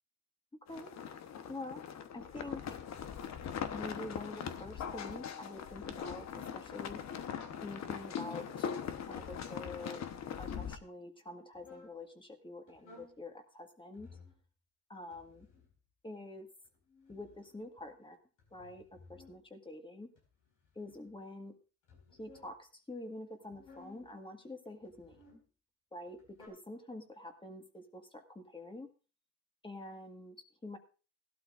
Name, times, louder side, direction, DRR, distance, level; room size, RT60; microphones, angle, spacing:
sound 1, 0.7-10.8, left 8 dB, 60° left, 1.1 m, -41 dB
voice 1, 1.5-1.8 2.1-2.8 3.7-7.0 7.6-8.7 9.0-10.0 10.4-14.1 14.9-15.5 16.0-16.5 17.1-18.2 18.5-20.1 20.8-21.5 22.1-25.2 25.9-28.9 29.6-30.8, left 2 dB, 15° left, 5 dB, 1.8 m, -47 dB
sound 2, 11.5-11.9 12.7-13.2 13.9-14.4 15.1-15.8 16.6-17.9 18.4-19.4 20.1-21.1 21.8-22.5 23.4-24.1 24.8-25.4 26.1-26.5, left 3 dB, 85° left, 5.0 m, -58 dB
16.5 x 12.0 x 2.5 m, 0.35 s
cardioid pair, 90°, 30 cm